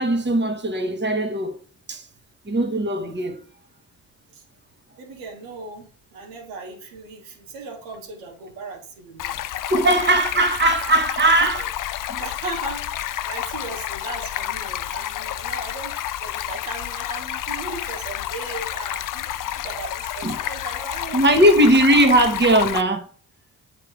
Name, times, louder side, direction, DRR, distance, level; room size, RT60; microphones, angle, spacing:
voice 1, 0.0-1.6 1.9-2.1 2.5-3.4 9.7-11.6 12.1-12.2 20.2-20.4 21.1-23.1, right 1 dB, 25° right, 1.4 m, -19 dB
voice 2, 5.0-9.4 9.8-10.0 12.2-12.9 13.2-15.9 16.2-21.7, right 3 dB, 90° right, 1.8 m, -37 dB
Stream, 9.2-22.8, left 12 dB, 50° left, 0.5 m, -30 dB
7.4 x 3.7 x 4.9 m
supercardioid pair, 55°, 43 cm